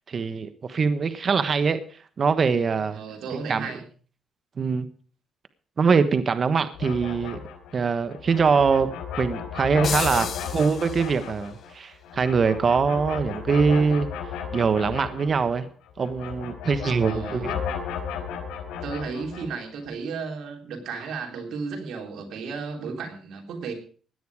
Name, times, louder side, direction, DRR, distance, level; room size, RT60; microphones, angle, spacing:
voice 1, 0.1-1.8 2.2-3.0 3.5-3.7 4.6-4.9 5.8-7.4 7.7-8.9 9.2-14.1 14.5-15.7 16.0-17.6, right 5 dB, 45° right, 11 dB, 1.3 m, -23 dB
voice 2, 2.9-3.9 17.1-17.5 18.8-23.7, right 5 dB, 75° right, 3 dB, 3.6 m, -34 dB
sound 1, 6.7-15.7 16.0-19.6, left 7 dB, 85° left, 4.6 m, -34 dB
sound 2, 9.8-11.5, left 8 dB, 60° left, 1.2 m, -33 dB
17.0 x 10.5 x 4.9 m, 0.43 s
cardioid pair, 90°, 0 cm